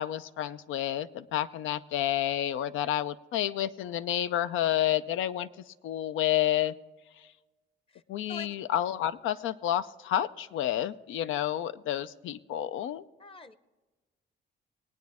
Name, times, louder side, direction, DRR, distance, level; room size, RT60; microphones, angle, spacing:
voice 1, 0.0-6.7 8.1-13.0, left 12 dB, 80° left, 14 dB, 0.6 m, -30 dB
voice 2, 13.2-13.5, left 3 dB, 25° left, 14 dB, 0.8 m, -44 dB
20.0 x 9.3 x 3.6 m, 1.2 s
cardioid pair, 90°, 20 cm